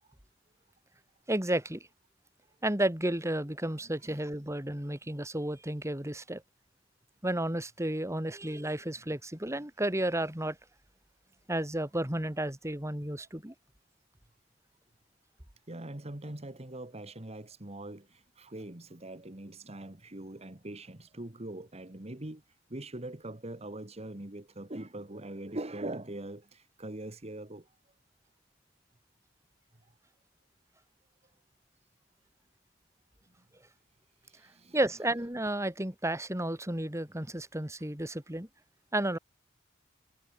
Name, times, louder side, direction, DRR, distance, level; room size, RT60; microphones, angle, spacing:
voice 1, 1.3-1.9 2.6-6.4 7.2-10.6 11.5-13.5 34.7-38.5 38.9-39.2, right 1 dB, 15° right, 2.8 m, -32 dB
voice 2, 15.7-22.4 22.7-27.7 34.2-34.8, right 1 dB, 35° right, 1.8 m, -42 dB
head